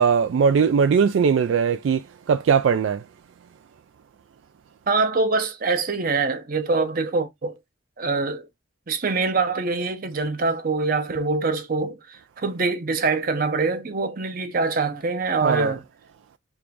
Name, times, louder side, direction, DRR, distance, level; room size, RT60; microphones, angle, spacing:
voice 1, 0.0-3.0 15.4-15.8, right 6 dB, 70° right, 0.3 m, -20 dB
voice 2, 4.9-7.6 8.0-8.5 8.9-15.8, right 3 dB, 45° right, 0.7 m, -24 dB
3.5 x 2.6 x 4.5 m
head